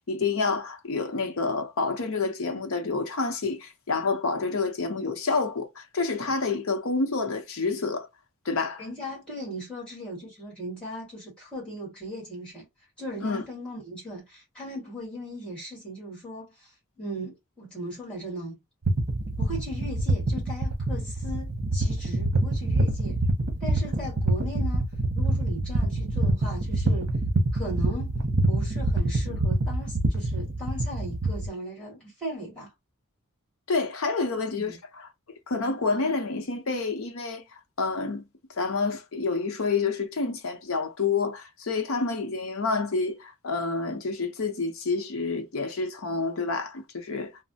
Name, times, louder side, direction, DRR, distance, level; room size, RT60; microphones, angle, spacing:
voice 1, 0.1-8.1 8.4-8.8 13.2-13.4 33.7-35.1 35.5-37.4 37.8-38.3 38.5-47.3, left 4 dB, 65° left, 0.7 m, -28 dB
voice 2, 8.8-12.7 13.0-18.6 19.4-23.2 23.6-24.8 25.1-27.1 27.5-28.2 28.5-32.7 34.5-34.8, equal, 5° left, 1.5 m, -38 dB
sound 1, 18.8-31.5, right 2 dB, 60° right, 0.9 m, -26 dB
3.1 x 2.0 x 2.7 m
head